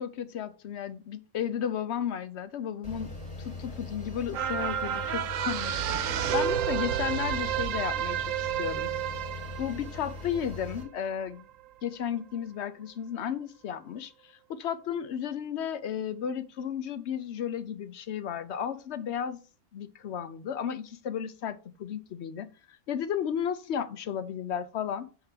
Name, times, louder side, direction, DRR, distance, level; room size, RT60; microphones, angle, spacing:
voice 1, 0.0-3.1 3.4-8.9 9.6-11.5 11.8-19.4 19.7-22.5 22.9-25.1, left 8 dB, 70° left, 0.9 m, -34 dB
sound 1, 2.8-10.8, left 2 dB, 25° left, 3.5 m, -41 dB
sound 2, 4.3-11.0 11.4-11.5, right 10 dB, 85° right, 1.0 m, -31 dB
7.8 x 3.7 x 4.9 m
omnidirectional pair, 1.3 m